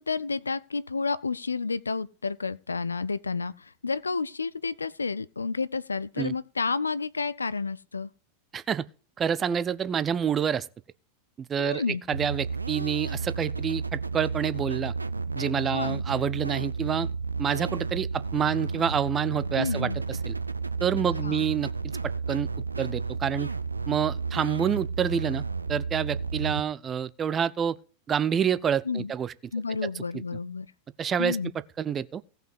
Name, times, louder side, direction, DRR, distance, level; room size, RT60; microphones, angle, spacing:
voice 1, 0.0-8.1 11.6-12.0 15.7-16.0 19.6-20.0 21.2-21.5 28.8-29.1 29.5-30.7 31.2-31.5, left 4 dB, 75° left, 0.4 m, -30 dB
voice 2, 8.5-8.8 9.2-10.7 11.4-11.8 12.1-14.9 15.4-17.1 17.4-20.3 20.8-21.7 22.3-22.5 22.8-23.5 23.9-27.8 28.1-29.3 31.0-31.4 31.8-32.2, right 8 dB, 25° right, 0.6 m, -28 dB
sound 1, 12.1-26.6, right 4 dB, 80° right, 0.5 m, -32 dB
17.0 x 5.8 x 5.3 m
figure-of-eight pair, 90°, 0 cm